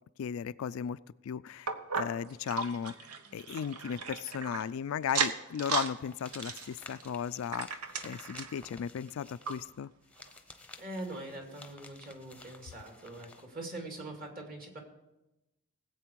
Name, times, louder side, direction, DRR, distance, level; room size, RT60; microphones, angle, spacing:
voice 1, 0.2-3.1 3.3-9.9, left 8 dB, 65° left, 16 dB, 0.3 m, -36 dB
sound 1, 1.7-4.6 5.0-5.9 6.2-8.6 9.1-9.2 9.5-9.6 10.2-10.3, right 5 dB, 85° right, 0.9 m, -36 dB
sound 2, 6.0-13.5, left 3 dB, 5° left, 0.8 m, -53 dB
voice 2, 10.8-14.8, right 2 dB, 40° right, 2 dB, 2.5 m, -43 dB
19.0 x 8.2 x 4.6 m, 0.97 s
head